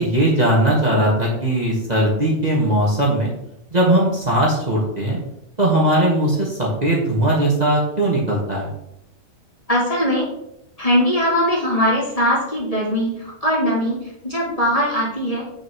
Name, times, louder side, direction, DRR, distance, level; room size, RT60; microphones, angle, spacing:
voice 1, 0.0-3.3 3.7-5.2 5.6-8.7, right 1 dB, 25° right, -5 dB, 2.1 m, -19 dB
voice 2, 9.7-10.3 10.8-15.4, equal, 25° left, -4 dB, 3.1 m, -20 dB
8.5 x 6.3 x 4.7 m, 0.81 s
omnidirectional pair, 1.6 m